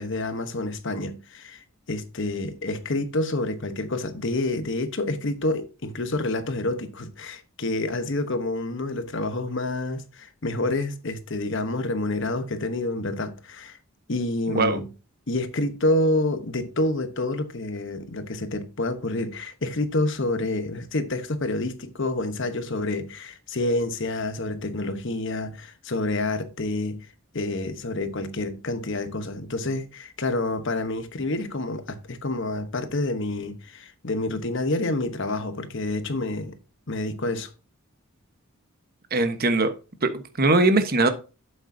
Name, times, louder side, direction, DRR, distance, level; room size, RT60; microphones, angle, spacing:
voice 1, 0.0-13.8 14.1-14.9 15.3-27.1 27.3-36.6 36.9-37.5, left 2 dB, 55° left, 1.1 m, -28 dB
voice 2, 39.1-39.7 40.0-41.1, right 2 dB, 40° right, 1.1 m, -21 dB
8.5 x 7.8 x 2.7 m
head